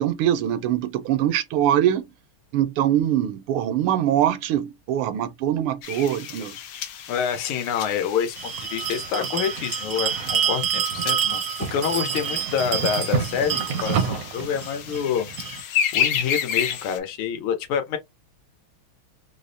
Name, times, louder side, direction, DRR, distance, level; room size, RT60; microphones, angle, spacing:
voice 1, 0.0-2.1 2.5-6.6, right 11 dB, 90° right, 1.5 m, -23 dB
sound 1, 5.8-17.0, left 8 dB, 70° left, 1.3 m, -32 dB
voice 2, 7.1-8.3 8.6-11.4 11.7-18.0, left 8 dB, 85° left, 1.7 m, -27 dB
Bell, 8.4-15.6, right 8 dB, 70° right, 0.8 m, -27 dB
4.8 x 2.1 x 2.5 m
omnidirectional pair, 2.3 m